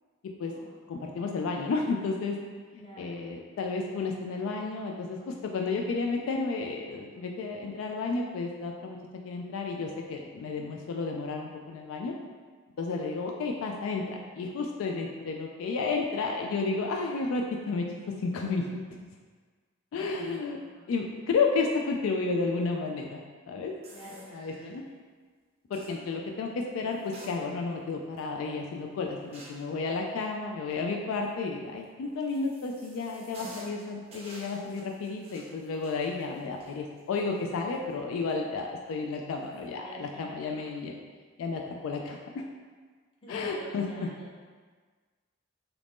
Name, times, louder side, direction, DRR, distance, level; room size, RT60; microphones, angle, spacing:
voice 1, 0.9-2.4 2.7-9.0 9.3-12.1 12.8-14.0 14.3-17.8 18.2-18.8 19.9-20.6 20.9-23.7 24.1-24.8 25.7-40.9 41.4-42.4 43.3-44.1, left 4 dB, 75° left, 1 dB, 0.3 m, -32 dB
voice 2, 2.8-3.4 20.4-20.8 23.9-25.0 39.8-40.7 43.2-44.4, right 1 dB, 25° left, -6 dB, 0.7 m, -48 dB
sound 1, 23.8-24.7 25.7-26.0 26.9-27.8 28.2-28.3 29.3-29.7 31.8-37.9 38.3-38.4 39.3-39.6, right 1 dB, 30° right, 0.5 m, -51 dB
3.0 x 2.5 x 3.4 m, 1.5 s
head